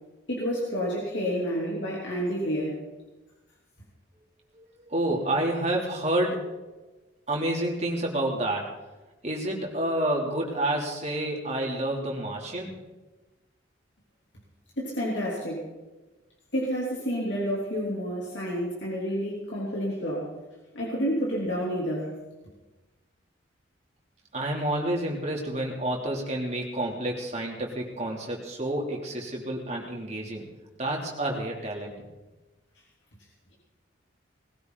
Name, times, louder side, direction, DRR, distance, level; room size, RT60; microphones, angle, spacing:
voice 1, 0.3-2.8 14.8-15.7 16.5-20.3 20.7-22.1, equal, 65° left, -5 dB, 3.4 m, -29 dB
voice 2, 4.5-6.4 7.3-8.6 9.2-12.7 24.3-30.4 30.8-31.9, right 1 dB, 35° right, -1 dB, 3.2 m, -29 dB
20.0 x 15.5 x 4.1 m, 1.1 s
head